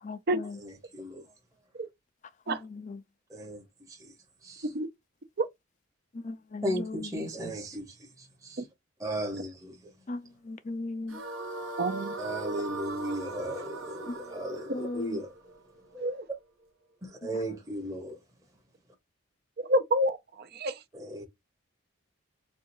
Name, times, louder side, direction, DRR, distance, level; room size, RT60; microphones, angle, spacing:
voice 1, 0.0-0.6 2.5-3.0 6.2-6.8 10.1-11.2 14.7-15.1, left 2 dB, 35° left, 0.4 m, -37 dB
voice 2, 0.6-1.3 3.3-4.1 4.4-4.7 6.6-8.6 9.0-9.9 12.2-15.3 15.9-16.1 17.0-18.2 20.9-21.2, right 1 dB, 15° right, 0.9 m, -36 dB
sound 1, 11.1-16.3, right 2 dB, 75° right, 0.9 m, -40 dB
voice 3, 11.8-12.1 16.0-16.2 19.7-20.8, right 1 dB, 50° right, 0.6 m, -28 dB
4.5 x 2.4 x 2.6 m
head